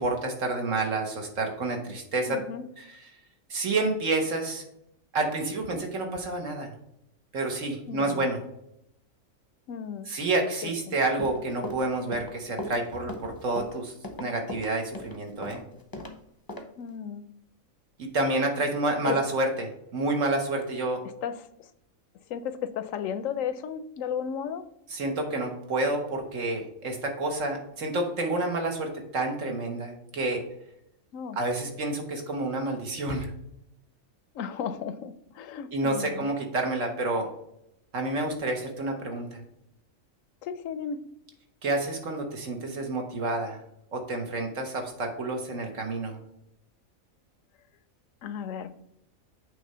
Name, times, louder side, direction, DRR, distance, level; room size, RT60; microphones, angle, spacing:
voice 1, 0.0-2.4 2.8-2.9 3.5-4.6 5.1-6.7 7.3-8.4 10.1-13.9 14.2-15.6 18.0-21.0 24.9-30.4 31.4-33.3 35.7-37.3 37.9-39.4 41.6-43.6 43.9-46.2, right 2 dB, 65° right, 3 dB, 1.7 m, -29 dB
voice 2, 2.3-2.6 7.9-8.3 9.7-10.1 10.9-11.0 16.8-17.2 19.0-19.2 21.2-21.5 22.3-24.6 31.1-31.4 34.3-36.3 40.4-41.0 48.2-48.7, left 8 dB, 75° left, 12 dB, 0.9 m, -34 dB
Run, 11.0-16.1 16.5-16.6, left 1 dB, 20° left, 0.7 m, -38 dB
8.6 x 3.3 x 5.5 m, 0.77 s
omnidirectional pair, 1.4 m